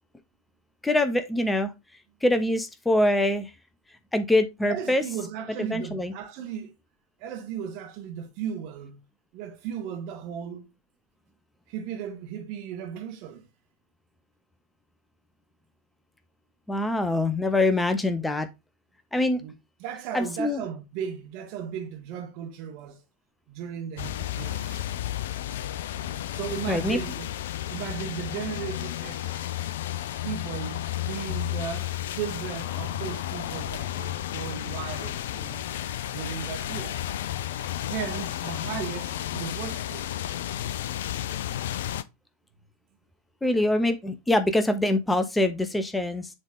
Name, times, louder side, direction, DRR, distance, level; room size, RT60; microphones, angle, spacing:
voice 1, 0.8-1.7 2.2-3.5 4.1-5.0 5.6-6.1 16.7-18.5 19.1-19.4 20.1-20.6 26.7-27.0 43.4-46.3, left 1 dB, 5° left, 0.6 m, -24 dB
voice 2, 4.7-6.7 7.2-9.0 9.3-10.7 11.7-13.5 19.3-19.5 19.8-23.0 23.5-25.2 26.3-27.3 27.7-29.5 30.2-35.6 36.0-37.0 37.9-40.1, right 8 dB, 45° right, 1.3 m, -36 dB
sound 1, 24.0-42.0, left 12 dB, 55° left, 0.4 m, -32 dB
7.2 x 3.4 x 3.8 m
figure-of-eight pair, 90°, 0 cm